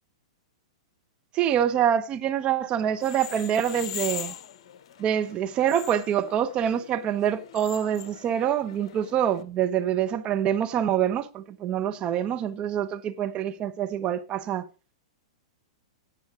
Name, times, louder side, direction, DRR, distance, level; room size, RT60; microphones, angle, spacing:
voice 1, 1.3-4.3 5.0-14.6, right 9 dB, 30° right, 1.0 m, -26 dB
sound 1, 2.9-9.4, left 10 dB, 60° left, 0.9 m, -41 dB
17.0 x 6.1 x 3.8 m
hypercardioid pair, 115°, 3 cm